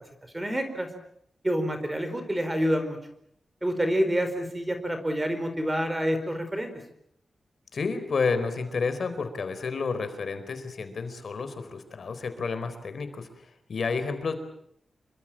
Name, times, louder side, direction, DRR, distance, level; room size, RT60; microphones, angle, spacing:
voice 1, 0.3-0.9 1.4-3.0 3.6-6.7, equal, 15° right, 8 dB, 4.4 m, -27 dB
voice 2, 7.7-14.3, left 4 dB, 60° left, 9 dB, 4.3 m, -30 dB
28.0 x 24.0 x 7.6 m, 0.71 s
wide cardioid pair, 160°, 0 cm